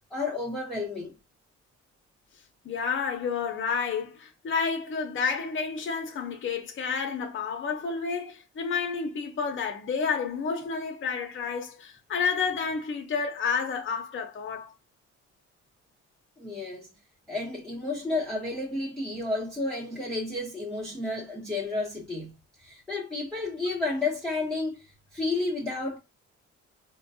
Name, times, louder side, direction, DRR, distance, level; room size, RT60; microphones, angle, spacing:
voice 1, 0.1-1.1 16.4-16.9 17.3-26.0, left 2 dB, ahead, 0.9 m, -31 dB
voice 2, 2.6-14.7, left 5 dB, 40° left, 0.7 m, -30 dB
4.4 x 2.2 x 2.7 m
cardioid pair, 90°, 30 cm